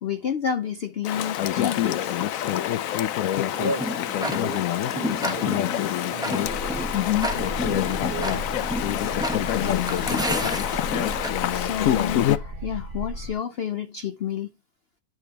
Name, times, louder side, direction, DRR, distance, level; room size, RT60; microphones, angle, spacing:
voice 1, 0.0-2.2 9.5-10.2 11.5-14.5, left 8 dB, 85° left, 0.5 m, -30 dB
Chatter / Stream, 1.0-12.4, left 12 dB, 70° left, 0.9 m, -26 dB
Tick-tock, 3.5-11.3, equal, 5° right, 1.0 m, -32 dB
voice 2, 3.5-8.6, right 3 dB, 40° right, 1.0 m, -36 dB
sound 1, 6.4-13.3, left 1 dB, 55° right, 2.1 m, -35 dB
11.0 x 5.1 x 2.9 m
omnidirectional pair, 1.8 m